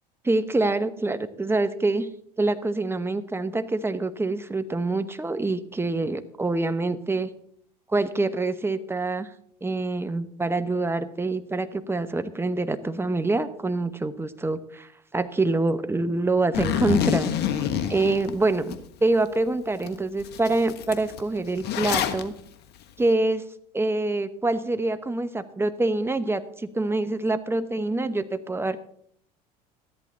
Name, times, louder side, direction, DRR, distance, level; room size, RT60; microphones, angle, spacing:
voice 1, 0.2-2.1 2.4-7.3 7.9-9.3 9.6-17.3 17.9-22.3 23.0-23.4 23.7-28.8, right 2 dB, 10° right, 11 dB, 1.0 m, -26 dB
Zipper (clothing), 16.5-18.8 19.3-19.4 19.8-19.9 20.2-22.2, left 9 dB, 55° left, 1.3 m, -27 dB
13.5 x 11.0 x 4.0 m, 0.64 s
hypercardioid pair, 75°, 20 cm